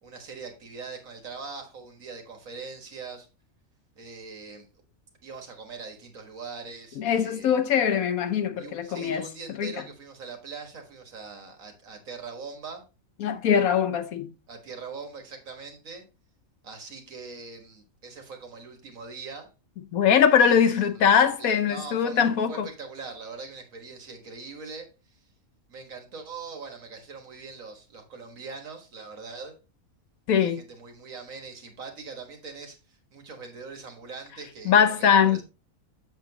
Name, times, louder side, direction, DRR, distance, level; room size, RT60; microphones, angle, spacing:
voice 1, 0.0-3.3 4.0-4.7 5.2-7.6 8.6-12.8 14.5-16.0 16.6-19.5 20.4-25.2 25.7-29.6 30.4-35.4, right 4 dB, 70° right, 2.0 m, -42 dB
voice 2, 7.0-9.3 9.6-9.7 13.2-14.3 19.9-22.7 30.3-30.6 34.6-35.4, left 7 dB, 80° left, 1.2 m, -22 dB
7.4 x 7.1 x 2.9 m
omnidirectional pair, 1.5 m